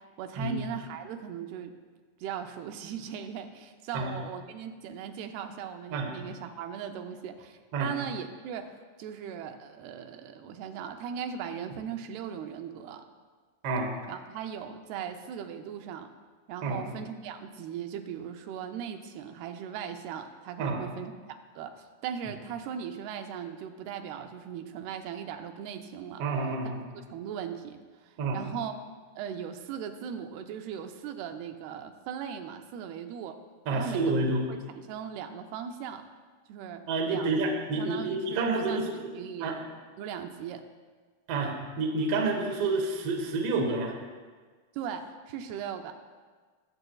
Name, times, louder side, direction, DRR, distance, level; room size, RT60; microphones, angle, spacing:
voice 1, 0.0-1.7 2.2-13.0 14.1-16.1 16.5-21.1 21.6-26.2 27.1-28.7 29.2-33.4 33.7-34.2 34.5-36.0 36.5-37.4 37.8-38.8 39.1-39.6 40.0-40.6 44.7-45.9, right 8 dB, 85° right, 6 dB, 2.6 m, -38 dB
voice 2, 26.2-26.8 28.2-28.4 33.7-34.4 36.9-38.8 39.4-39.6 41.3-43.9, right 3 dB, 65° right, 1 dB, 1.5 m, -28 dB
20.0 x 8.0 x 2.3 m, 1.5 s
omnidirectional pair, 4.4 m